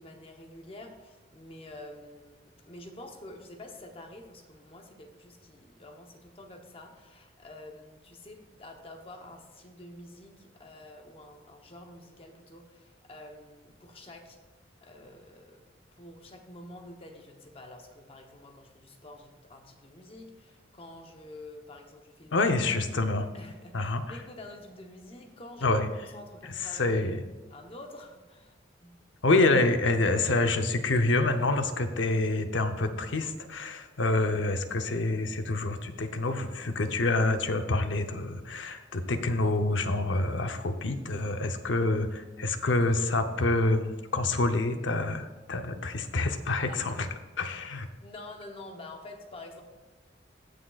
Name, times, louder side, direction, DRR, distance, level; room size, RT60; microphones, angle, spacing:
voice 1, 0.0-14.4 14.8-15.6 15.9-22.5 23.3-25.8 26.1-27.2 27.5-28.5 28.8-28.9 46.7-47.0 48.0-49.6, left 1 dB, 30° left, 3 dB, 0.8 m, -48 dB
voice 2, 22.3-23.3 23.7-24.0 25.6-25.9 26.7-27.2 29.2-47.1 47.4-47.9, left 2 dB, 90° left, 7 dB, 0.7 m, -27 dB
16.5 x 6.4 x 2.4 m, 1.2 s
head